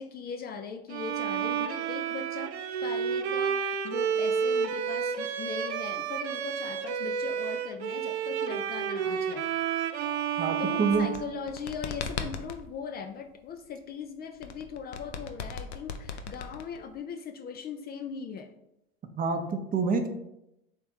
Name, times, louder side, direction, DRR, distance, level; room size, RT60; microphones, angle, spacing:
voice 1, 0.0-2.5 2.8-9.5 10.3-18.5, left 6 dB, 30° left, 5 dB, 0.4 m, -40 dB
Bowed string instrument, 0.9-11.9, right 7 dB, 90° right, 0.5 m, -31 dB
voice 2, 10.4-11.1 19.2-20.1, right 4 dB, 25° right, 6 dB, 0.6 m, -27 dB
sound 1, 10.8-12.6 14.4-17.0, left 6 dB, 85° left, 0.6 m, -37 dB
3.5 x 3.2 x 4.3 m, 0.86 s
hypercardioid pair, 85°, 32 cm